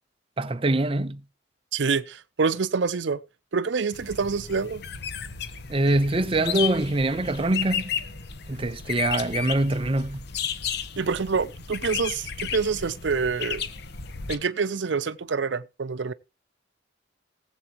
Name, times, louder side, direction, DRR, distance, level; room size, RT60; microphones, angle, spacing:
voice 1, 0.4-1.2 5.7-7.9 8.5-10.3, right 2 dB, 30° right, 0.6 m, -24 dB
voice 2, 1.7-3.2 3.5-4.8 11.0-13.7 14.3-16.1, right 5 dB, 70° right, 0.6 m, -26 dB
sound 1, 3.9-14.4, left 8 dB, 60° left, 1.1 m, -33 dB
19.0 x 8.0 x 3.0 m
head